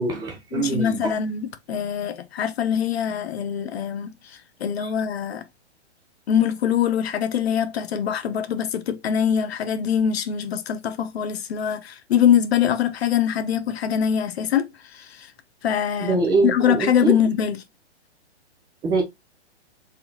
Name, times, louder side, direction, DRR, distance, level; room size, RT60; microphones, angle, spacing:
voice 1, 0.0-1.1 4.8-4.9 16.0-17.2 18.8-19.0, right 3 dB, 10° right, 0.7 m, -23 dB
voice 2, 0.5-5.5 6.3-15.3 15.6-16.2 16.4-17.6, left 8 dB, 65° left, 0.8 m, -23 dB
4.5 x 3.7 x 2.8 m
hypercardioid pair, 155°, 34 cm